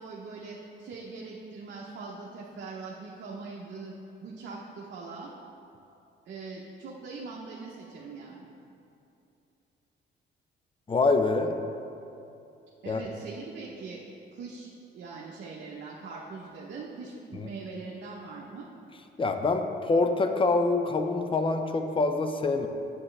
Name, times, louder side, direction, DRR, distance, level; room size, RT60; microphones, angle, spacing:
voice 1, 0.0-3.9 4.2-5.3 6.3-8.5 12.8-14.0 14.3-18.7, right 4 dB, 65° right, -3 dB, 0.9 m, -41 dB
voice 2, 10.9-11.5 12.9-13.0 17.4-17.5 19.2-22.7, left 3 dB, 25° left, 6 dB, 0.6 m, -25 dB
8.6 x 7.8 x 3.3 m, 2.7 s
cardioid pair, 90°, 20 cm